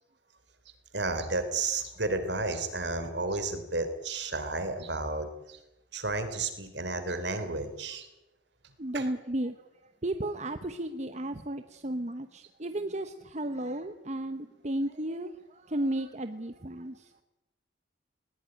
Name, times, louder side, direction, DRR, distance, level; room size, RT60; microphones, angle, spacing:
voice 1, 0.9-5.6 5.9-8.1 8.9-9.0, right 3 dB, 60° right, 9 dB, 3.6 m, -32 dB
voice 2, 8.8-9.6 10.0-17.1, right 1 dB, 35° right, 9 dB, 1.0 m, -34 dB
20.5 x 20.0 x 9.9 m, 0.96 s
head